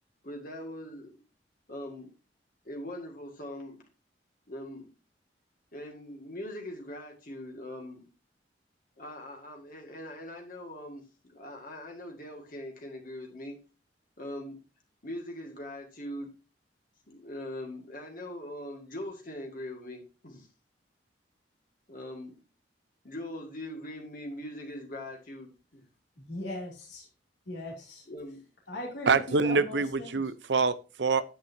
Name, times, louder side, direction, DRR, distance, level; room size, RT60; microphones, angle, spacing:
voice 1, 0.2-1.1 1.7-2.1 2.7-3.8 4.5-4.9 5.7-8.0 9.0-13.6 14.2-14.6 15.0-16.3 17.1-20.5 21.9-22.4 23.0-25.8 28.1-28.4, left 1 dB, 50° left, 1.9 m, -41 dB
voice 2, 26.3-27.1 27.5-28.0 28.7-30.2, left 1 dB, 75° left, 2.7 m, -39 dB
voice 3, 29.1-31.2, right 4 dB, 70° right, 0.7 m, -26 dB
10.0 x 8.2 x 2.7 m
head